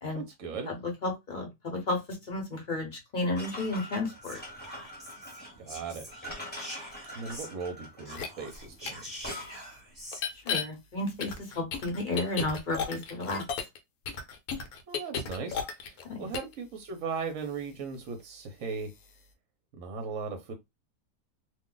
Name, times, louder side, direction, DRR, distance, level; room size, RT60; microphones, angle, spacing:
voice 1, 0.1-0.7 5.6-6.1 7.1-9.6 14.9-15.6 16.2-18.9 19.7-20.5, right 5 dB, 60° right, 0.9 m, -38 dB
voice 2, 0.7-4.4 10.4-13.4 16.0-16.3, left 2 dB, 40° left, 0.8 m, -32 dB
sound 1, 3.3-9.9, left 1 dB, 10° left, 0.8 m, -44 dB
Whispering, 4.2-7.7 8.0-10.2, equal, 20° right, 1.1 m, -45 dB
sound 2, 8.1-8.3 8.9-9.0 10.1-10.6 11.2-13.8 14.1-16.0 16.3-16.5, left 6 dB, 70° left, 1.1 m, -33 dB
2.6 x 2.2 x 3.8 m
omnidirectional pair, 1.7 m